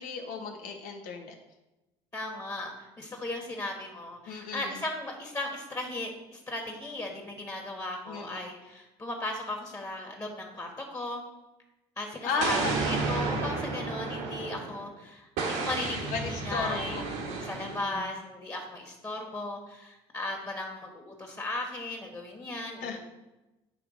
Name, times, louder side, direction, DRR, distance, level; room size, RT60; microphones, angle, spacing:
voice 1, 0.0-1.3 4.2-4.8 8.1-8.3 12.2-12.8 16.1-18.0 22.8-23.0, left 5 dB, 80° left, 3 dB, 1.3 m, -35 dB
voice 2, 2.1-11.2 12.0-17.0 17.4-23.0, left 2 dB, 25° left, 2 dB, 1.5 m, -37 dB
Explosion, 12.4-14.9 15.4-17.9, right 3 dB, 80° right, 1.5 m, -32 dB
9.3 x 3.3 x 5.2 m, 1.0 s
supercardioid pair, 85°, 14 cm